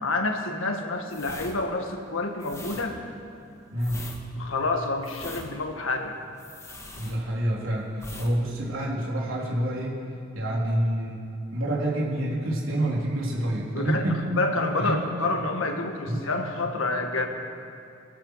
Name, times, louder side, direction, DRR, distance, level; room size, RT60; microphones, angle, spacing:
voice 1, 0.0-3.0 4.4-6.1 13.7-17.3, left 2 dB, 85° left, 4 dB, 1.7 m, -28 dB
sound 1, 1.1-7.6 7.9-8.3 8.6-8.8, left 2 dB, 15° left, 1.5 m, -42 dB
voice 2, 3.7-4.0 7.0-7.9 8.2-10.0 10.3-11.2 11.5-14.3 14.8-15.0 16.1-16.3, right 1 dB, 85° right, -3 dB, 3.6 m, -27 dB
23.0 x 13.0 x 4.8 m, 2.6 s
head